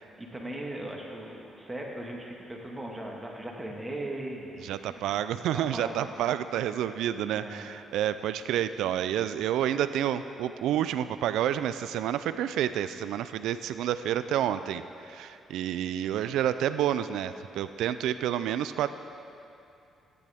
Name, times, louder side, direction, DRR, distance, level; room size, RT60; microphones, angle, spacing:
voice 1, 0.2-5.0 5.5-6.1 7.3-7.7, right 1 dB, 15° right, -1 dB, 1.7 m, -38 dB
voice 2, 4.6-18.9, right 10 dB, 85° right, 12 dB, 0.3 m, -29 dB
16.5 x 10.0 x 3.5 m, 2.7 s
cardioid pair, 90°, 0 cm